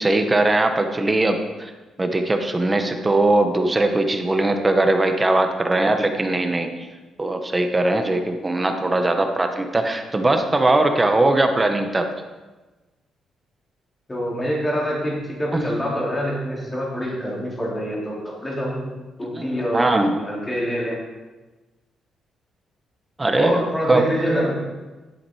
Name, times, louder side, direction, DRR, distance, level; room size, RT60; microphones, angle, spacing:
voice 1, 0.0-1.7 2.0-6.7 7.2-12.1 15.5-15.7 19.3-20.1 23.2-23.6 23.9-24.0, right 2 dB, 15° right, 5 dB, 1.0 m, -20 dB
voice 2, 14.1-18.9 19.2-21.0 23.4-24.6, equal, 15° left, -4 dB, 3.6 m, -26 dB
11.5 x 7.1 x 4.8 m, 1.2 s
cardioid pair, 115°, 0 cm